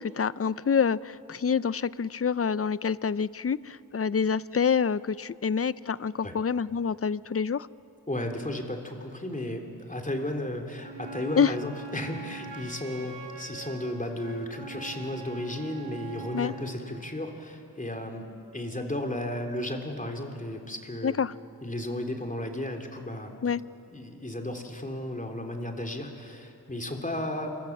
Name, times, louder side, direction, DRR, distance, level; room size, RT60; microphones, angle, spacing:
voice 1, 0.0-7.7 11.4-11.5 16.3-16.5 21.0-21.3 23.4-23.6, left 6 dB, 35° left, 18 dB, 0.6 m, -27 dB
voice 2, 8.1-18.2 18.5-21.2 21.6-23.5 23.9-27.6, left 1 dB, 20° left, 4 dB, 3.4 m, -34 dB
Wind instrument woodwind instrument, 10.8-16.8, right 5 dB, 80° right, 3.6 m, -43 dB
27.5 x 24.5 x 7.4 m, 2.6 s
wide cardioid pair, 70°, 38 cm